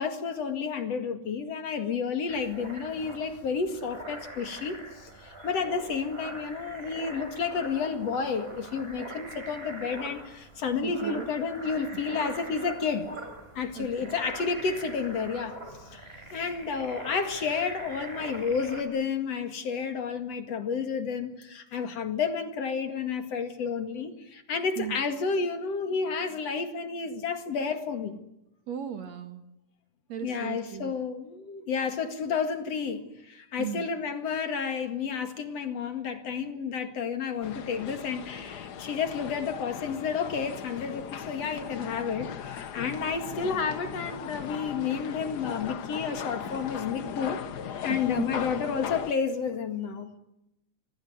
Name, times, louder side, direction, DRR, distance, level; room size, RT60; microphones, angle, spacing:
voice 1, 0.0-13.1 13.5-28.2 30.2-50.1, left 5 dB, 60° left, 3.0 m, -31 dB
sound 1, 2.3-18.8, right 2 dB, 20° right, 4.9 m, -43 dB
voice 2, 10.8-11.3 13.8-14.2 24.8-25.0 28.7-29.4 30.1-30.9 33.6-33.9 47.9-48.3, right 10 dB, 65° right, 3.0 m, -36 dB
sound 2, 37.4-49.1, left 8 dB, 85° left, 0.8 m, -38 dB
26.0 x 19.5 x 9.4 m
omnidirectional pair, 3.4 m